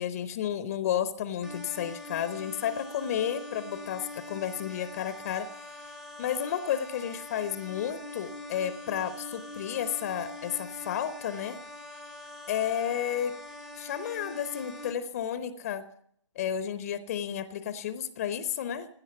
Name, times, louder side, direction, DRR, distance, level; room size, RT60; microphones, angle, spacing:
voice 1, 0.0-5.5 5.8-5.9 6.2-11.6 12.5-13.3 13.7-15.8 16.4-18.9, left 9 dB, 30° left, 14 dB, 0.7 m, -32 dB
sound 1, 1.4-14.9, left 2 dB, ahead, 0.7 m, -43 dB
16.5 x 12.0 x 6.9 m, 0.67 s
figure-of-eight pair, 145°, 16 cm